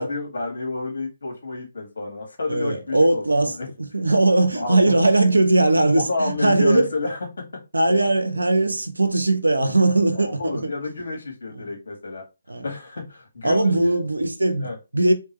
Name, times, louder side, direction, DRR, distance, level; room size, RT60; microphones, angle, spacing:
voice 1, 0.0-3.7 4.5-4.9 5.9-7.2 7.5-7.6 10.1-12.2 12.6-14.0 14.6-14.8, left 3 dB, 60° left, 2.1 m, -30 dB
voice 2, 2.5-6.9 7.7-10.6 11.5-11.7 12.5-12.7 13.4-15.1, right 2 dB, 85° right, 0.8 m, -20 dB
3.7 x 3.4 x 3.1 m
figure-of-eight pair, 140°, 0 cm